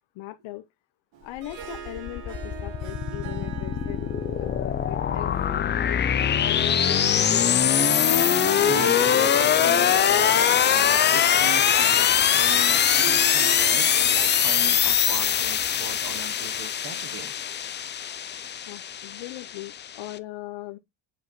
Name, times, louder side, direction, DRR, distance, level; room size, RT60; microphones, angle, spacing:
voice 1, 0.2-0.6 1.2-4.0 4.4-6.1 6.4-7.7 18.7-20.8, left 17 dB, 75° left, 0.8 m, -39 dB
Harp, 1.1-16.4, right 8 dB, 70° right, 2.0 m, -42 dB
sound 1, 1.4-20.1, left 9 dB, 25° left, 0.4 m, -22 dB
voice 2, 8.6-17.3, right 7 dB, 45° right, 1.0 m, -38 dB
sound 2, 11.4-16.7, right 2 dB, 20° right, 1.6 m, -49 dB
8.1 x 4.9 x 3.0 m
cardioid pair, 155°, 47 cm